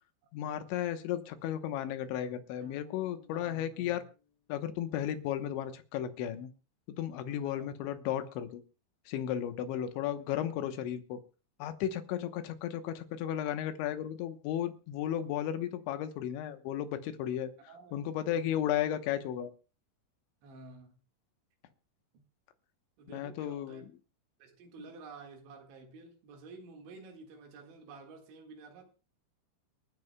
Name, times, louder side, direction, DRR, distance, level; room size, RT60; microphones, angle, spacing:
voice 1, 0.3-4.0 4.5-6.5 6.9-8.6 9.1-11.2 11.6-17.5 17.9-19.5 23.1-23.9, left 10 dB, 85° left, 3.4 m, -34 dB
sound 1, 2.6-4.9, left 6 dB, 65° right, 5.4 m, -60 dB
voice 2, 3.3-4.0 7.4-7.7 9.7-9.8 17.7-18.6 20.4-21.0 23.0-23.8 24.4-28.9, right 3 dB, 80° right, 4.2 m, -51 dB
29.0 x 9.7 x 2.3 m
omnidirectional pair, 5.2 m